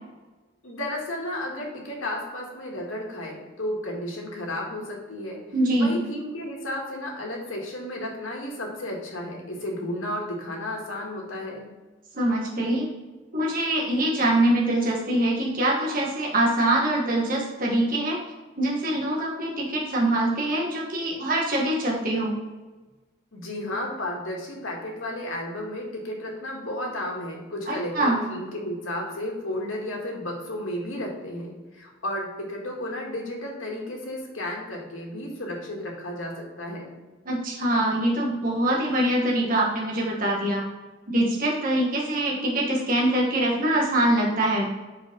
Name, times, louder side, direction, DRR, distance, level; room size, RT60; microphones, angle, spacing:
voice 1, 0.6-5.4 5.8-11.7 23.3-36.9, left 1 dB, 75° left, -1 dB, 1.8 m, -33 dB
voice 2, 5.5-5.9 12.1-12.9 13.3-18.2 18.6-22.3 27.7-28.2 37.2-40.6 41.1-44.7, right 1 dB, 45° right, -3 dB, 1.4 m, -24 dB
5.0 x 4.9 x 5.3 m, 1.2 s
head